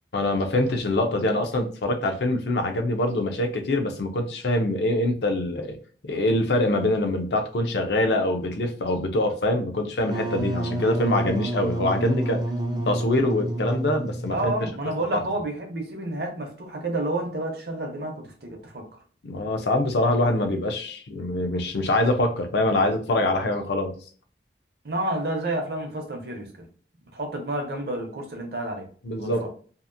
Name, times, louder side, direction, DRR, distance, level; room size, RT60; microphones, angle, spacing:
voice 1, 0.1-5.8 6.0-12.4 12.9-14.5 15.1-15.2 19.2-23.9 29.0-29.4, left 1 dB, 70° left, 0.5 m, -24 dB
Wind instrument woodwind instrument, 10.0-14.6, right 1 dB, 20° right, 0.4 m, -29 dB
voice 2, 12.3-12.8 14.3-18.9 24.8-26.7 27.1-28.9 29.2-29.5, right 1 dB, 60° right, 0.7 m, -30 dB
2.8 x 2.4 x 2.5 m
head